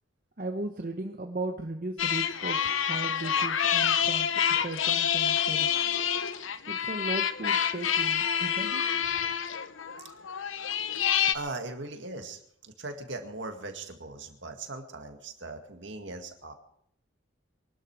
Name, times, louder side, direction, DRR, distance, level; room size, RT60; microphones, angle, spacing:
voice 1, 0.4-5.7 6.7-9.1, right 2 dB, 45° right, 4 dB, 1.0 m, -37 dB
sound 1, 2.0-11.3, left 8 dB, 75° left, 0.9 m, -27 dB
voice 2, 11.3-16.5, right 2 dB, 65° right, 5 dB, 2.1 m, -39 dB
23.5 x 12.0 x 4.8 m, 0.70 s
head